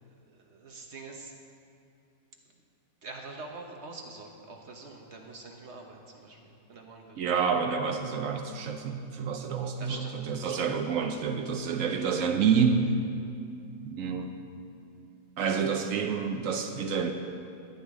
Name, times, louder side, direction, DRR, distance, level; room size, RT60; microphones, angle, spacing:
voice 1, 0.1-1.3 2.5-2.6 3.0-7.3 9.6-10.6, right 3 dB, 50° right, 2 dB, 0.8 m, -45 dB
voice 2, 7.2-12.9 13.8-14.3 15.4-17.1, right 6 dB, 85° right, 5 dB, 0.7 m, -28 dB
14.5 x 9.8 x 3.6 m, 2.6 s
omnidirectional pair, 2.1 m